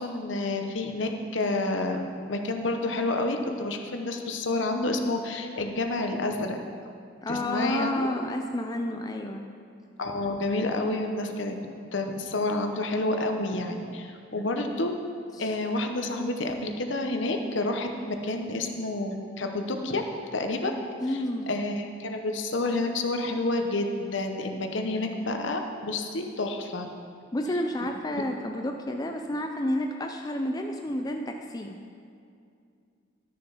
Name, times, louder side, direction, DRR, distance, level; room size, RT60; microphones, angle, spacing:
voice 1, 0.0-2.0 2.3-6.6 7.3-8.1 10.0-11.7 11.9-14.9 15.4-17.9 18.2-20.0 20.3-20.7 21.1-21.2 21.5-26.9, left 2 dB, 65° left, 4 dB, 0.9 m, -29 dB
voice 2, 7.2-9.4 15.4-15.5 21.0-21.5 27.3-31.8, left 1 dB, 20° left, 3 dB, 0.4 m, -30 dB
12.5 x 6.6 x 5.6 m, 2.4 s
head